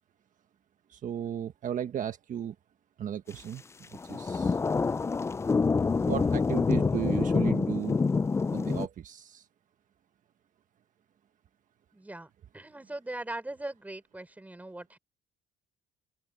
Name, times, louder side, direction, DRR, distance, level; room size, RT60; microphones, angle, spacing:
voice 1, 0.9-2.5 3.0-3.6 3.9-4.6 6.0-8.0 8.5-9.5, right 9 dB, 50° right, 1.4 m, -35 dB
sound 1, 3.9-8.9, left 4 dB, 15° left, 0.3 m, -27 dB
voice 2, 11.9-15.0, right 2 dB, 10° right, 3.6 m, -40 dB
open air
cardioid pair, 110°, 17 cm